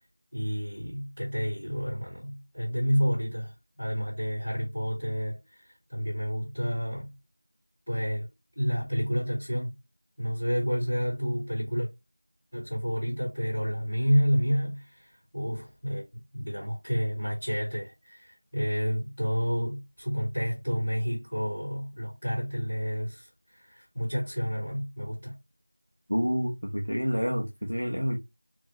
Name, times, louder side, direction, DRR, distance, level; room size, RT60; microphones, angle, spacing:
voice 1, 0.3-7.1 7.9-8.3 8.5-9.7 10.2-11.9 12.5-25.4, equal, 10° left, 1.3 m, -30 dB
voice 2, 26.1-28.2, equal, 25° right, 0.4 m, -28 dB
3.5 x 2.5 x 2.8 m
figure-of-eight pair, 180°, 0 cm